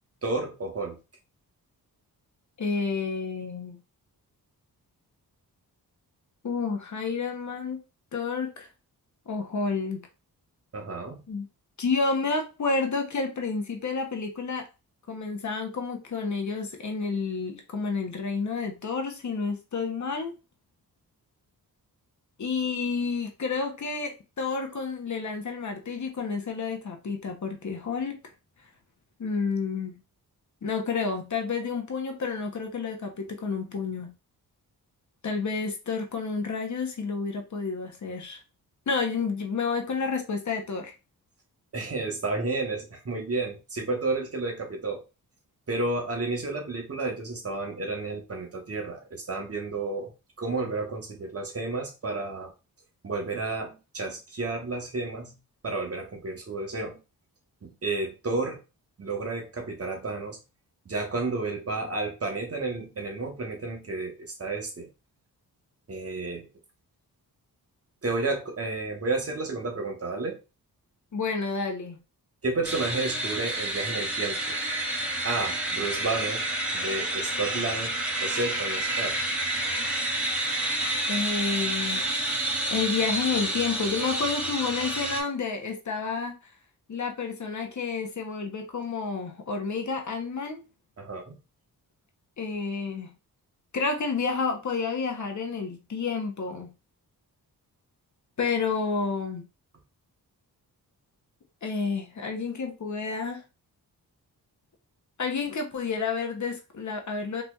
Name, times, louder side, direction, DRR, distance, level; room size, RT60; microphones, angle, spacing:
voice 1, 0.2-1.0 10.7-11.2 41.7-45.0 45.7-50.1 50.4-52.5 53.0-55.3 55.6-57.0 57.6-58.6 59.0-60.4 60.8-64.9 65.9-66.5 68.0-70.4 72.4-74.6 75.2-79.2 91.0-91.4, right 3 dB, 40° right, 1.0 m, -31 dB
voice 2, 2.6-3.8 6.4-7.8 8.1-8.7 9.3-10.1 11.3-11.5 11.8-14.6 15.1-20.3 22.4-28.2 29.2-30.0 30.6-34.1 35.2-38.4 38.9-40.9 71.1-72.0 81.1-82.1 82.7-86.3 86.9-90.6 92.4-93.1 93.7-96.7 98.4-99.4 101.6-103.4 105.2-107.4, left 4 dB, 50° left, 0.9 m, -30 dB
sound 1, 72.6-85.2, right 1 dB, 5° right, 1.4 m, -29 dB
4.0 x 3.0 x 2.3 m
cardioid pair, 85°, 37 cm